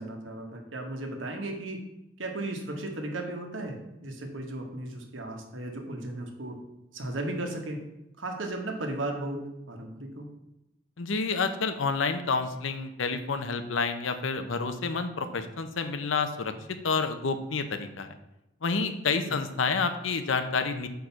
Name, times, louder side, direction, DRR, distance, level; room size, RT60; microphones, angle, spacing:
voice 1, 0.0-1.8 2.2-6.6 6.9-7.9 8.2-10.3 19.1-19.4, right 2 dB, 85° right, 3 dB, 1.3 m, -35 dB
voice 2, 11.0-16.5 16.8-18.2 18.6-20.9, left 4 dB, 85° left, 9 dB, 0.7 m, -29 dB
6.3 x 4.7 x 5.7 m, 0.90 s
head